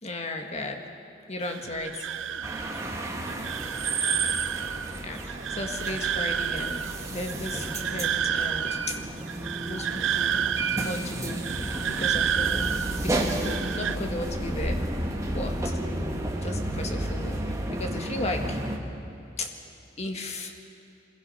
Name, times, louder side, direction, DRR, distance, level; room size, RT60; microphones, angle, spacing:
voice 1, 0.0-0.8 1.3-2.1 5.0-9.1 9.7-10.4 10.6-11.4 11.9-12.7 13.0-14.8 15.3-15.8 16.4-17.4 17.7-18.6 19.4-19.5 20.0-20.5, left 2 dB, 35° left, 3 dB, 1.7 m, -35 dB
sound 1, 1.4-14.0, right 8 dB, 80° right, 0.6 m, -31 dB
sound 2, 2.4-18.8, right 1 dB, 15° right, 1.8 m, -32 dB
26.0 x 21.5 x 5.7 m, 2.9 s
head